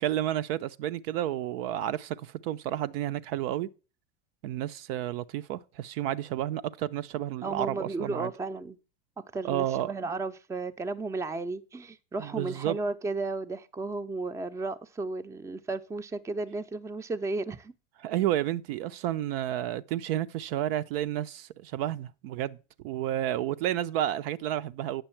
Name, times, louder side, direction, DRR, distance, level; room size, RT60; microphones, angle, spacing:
voice 1, 0.0-3.7 4.4-8.3 9.4-9.9 12.2-12.8 18.0-22.6 22.8-25.0, right 12 dB, 55° right, 0.5 m, -31 dB
voice 2, 7.4-8.8 9.3-17.7, right 3 dB, 10° right, 0.5 m, -34 dB
9.0 x 6.7 x 4.4 m
hypercardioid pair, 85°, 35 cm